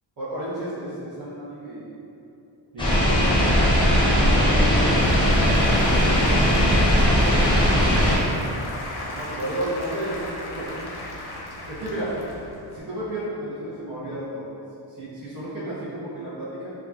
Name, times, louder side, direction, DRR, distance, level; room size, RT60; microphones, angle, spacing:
voice 1, 0.2-1.9 2.7-3.2 4.1-5.2 5.8-7.1 9.0-10.2 10.6-10.7 11.2-12.2 12.7-14.5 14.9-16.7, right 1 dB, 40° right, -11 dB, 0.8 m, -33 dB
sound 1, 2.8-8.2, equal, 10° left, 0.6 m, -19 dB
Applause / Crowd, 4.0-12.8, left 1 dB, 55° left, 0.5 m, -36 dB
2.8 x 2.3 x 2.4 m, 2.7 s
wide cardioid pair, 95°, 48 cm